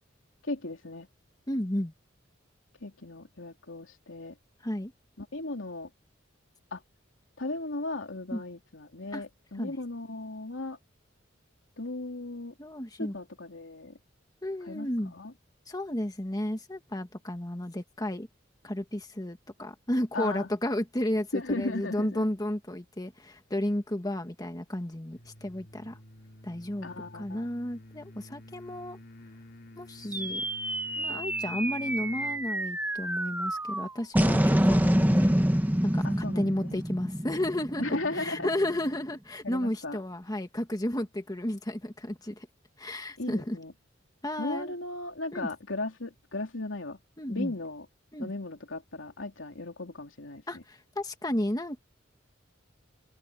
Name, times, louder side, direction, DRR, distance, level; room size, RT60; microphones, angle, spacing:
voice 1, 0.4-1.1 2.8-4.4 5.2-5.9 6.7-6.8 7.4-10.8 11.8-12.5 13.0-14.0 14.6-15.3 20.1-20.5 21.3-22.3 26.8-27.5 36.0-36.8 37.8-38.5 39.4-40.0 43.2-43.7 44.4-47.0 47.3-47.9 48.2-50.6, left 2 dB, 80° left, 3.1 m, -36 dB
voice 2, 1.5-1.9 4.6-4.9 8.3-8.4 9.1-9.2 9.6-9.7 12.6-13.1 14.4-15.1 15.7-18.3 18.6-26.0 26.4-29.0 29.8-30.4 31.0-35.3 35.8-42.5 42.8-43.6 44.2-44.7 45.3-45.5 47.2-47.5 48.1-48.3 50.5-51.8, left 1 dB, 20° left, 1.5 m, -33 dB
sound 1, 25.1-32.5, left 1 dB, 55° left, 3.2 m, -50 dB
sound 2, 30.1-38.7, equal, 10° right, 1.3 m, -27 dB
head